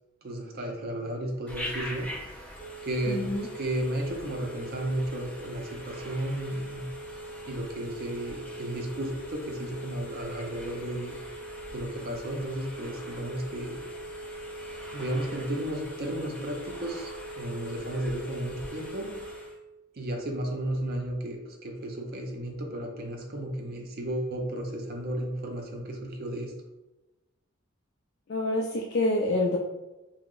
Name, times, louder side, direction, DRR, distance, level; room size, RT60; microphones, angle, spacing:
voice 1, 0.2-2.1 2.8-3.3 3.6-6.9 7.5-11.1 11.7-13.8 14.9-17.1 17.4-19.1 19.9-26.5, right 1 dB, 45° right, 1 dB, 0.5 m, -33 dB
Telephone, 1.5-19.6, right 1 dB, 10° left, 0.9 m, -40 dB
voice 2, 3.1-3.5 28.3-29.6, left 2 dB, 50° left, -1 dB, 0.3 m, -27 dB
2.9 x 2.0 x 3.7 m, 1.0 s
head